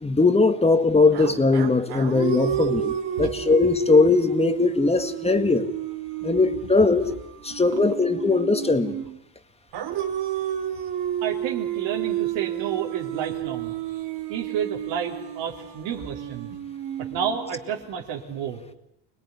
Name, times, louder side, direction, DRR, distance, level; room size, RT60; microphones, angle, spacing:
voice 1, 0.0-5.7 6.2-7.1 7.4-9.0, left 3 dB, 15° left, 9 dB, 1.9 m, -20 dB
sound 1, 1.1-9.2 9.7-17.8, right 11 dB, 65° right, 2.5 m, -31 dB
voice 2, 11.2-13.7 14.3-16.6 17.0-18.6, right 8 dB, 85° right, -1 dB, 3.8 m, -30 dB
25.5 x 21.0 x 9.7 m, 0.80 s
cardioid pair, 120°, 43 cm